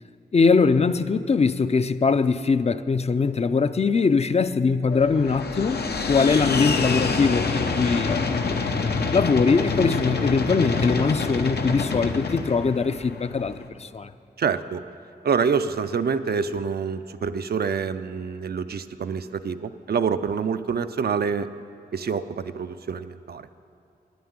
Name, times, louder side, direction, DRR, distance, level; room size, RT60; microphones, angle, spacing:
voice 1, 0.3-5.8 6.1-8.6 9.1-14.1, left 4 dB, 40° left, 0.4 m, -22 dB
sound 1, 4.9-13.7, left 4 dB, 90° left, 0.8 m, -26 dB
voice 2, 14.4-14.8 15.2-21.5 21.9-23.5, right 6 dB, 75° right, 0.5 m, -26 dB
9.4 x 9.3 x 9.6 m
wide cardioid pair, 100°, 16 cm